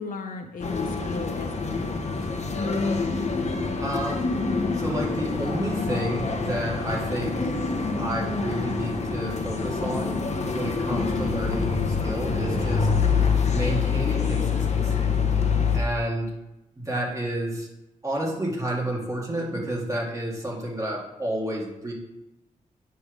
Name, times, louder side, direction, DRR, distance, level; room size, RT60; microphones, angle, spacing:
voice 1, 0.0-2.0, left 4 dB, 90° left, 4 dB, 0.7 m, -36 dB
sound 1, 0.6-15.8, left 5 dB, 55° left, 0.9 m, -26 dB
voice 2, 3.8-4.2 4.7-7.4 8.0-10.1 10.5-12.9 13.5-15.1 15.7-16.3 16.8-17.7 18.0-21.9, right 1 dB, 25° right, -3 dB, 2.1 m, -30 dB
8.6 x 3.4 x 6.4 m, 0.95 s
wide cardioid pair, 105°, 14 cm